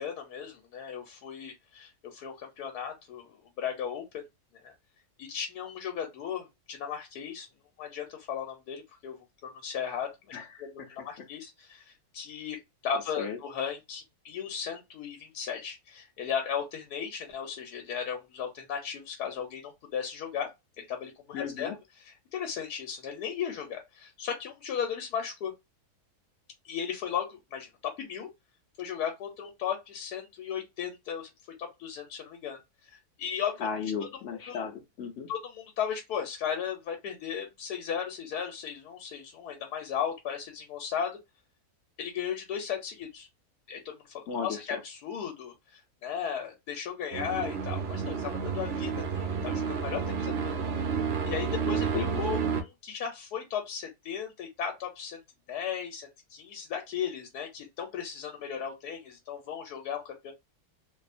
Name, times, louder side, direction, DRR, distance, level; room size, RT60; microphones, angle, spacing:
voice 1, 0.0-4.2 4.6-4.7 5.2-7.5 7.8-9.2 9.4-20.5 20.8-25.5 26.6-28.3 28.8-31.3 31.6-33.7 34.1-34.2 34.5-34.6 35.3-41.1 42.0-43.3 43.7-50.5 51.2-55.2 55.5-60.3, left 8 dB, 85° left, 1.2 m, -36 dB
voice 2, 21.3-21.7 33.6-35.3 44.3-44.8 51.9-52.2, left 6 dB, 60° left, 0.8 m, -35 dB
sound 1, 47.1-52.6, right 6 dB, 65° right, 0.6 m, -30 dB
2.7 x 2.3 x 2.4 m
omnidirectional pair, 1.7 m